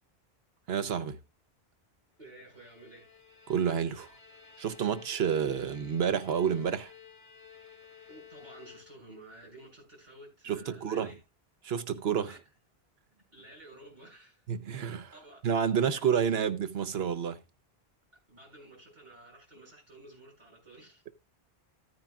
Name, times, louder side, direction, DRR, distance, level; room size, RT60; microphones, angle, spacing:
voice 1, 0.7-1.2 3.5-4.1 4.6-6.9 10.4-11.1 11.6-12.4 14.5-15.1 15.4-17.4, right 7 dB, 75° right, 1.0 m, -29 dB
voice 2, 2.2-3.1 8.1-11.1 12.2-12.4 13.1-14.5 15.1-15.4 15.8-16.0 18.3-21.0, right 1 dB, 45° right, 7.3 m, -52 dB
Bowed string instrument, 2.3-9.3, left 7 dB, 55° left, 2.5 m, -54 dB
15.0 x 9.4 x 2.4 m
omnidirectional pair, 1.1 m